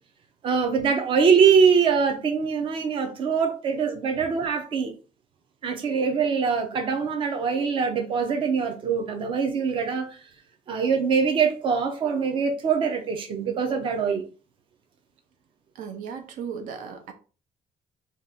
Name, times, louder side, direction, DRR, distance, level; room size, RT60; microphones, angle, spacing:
voice 1, 0.4-4.9 5.6-10.2 10.7-14.3, right 6 dB, 40° right, 0.6 m, -23 dB
voice 2, 15.7-17.1, right 6 dB, 80° right, 0.6 m, -36 dB
2.8 x 2.4 x 3.6 m
cardioid pair, 165°, 13 cm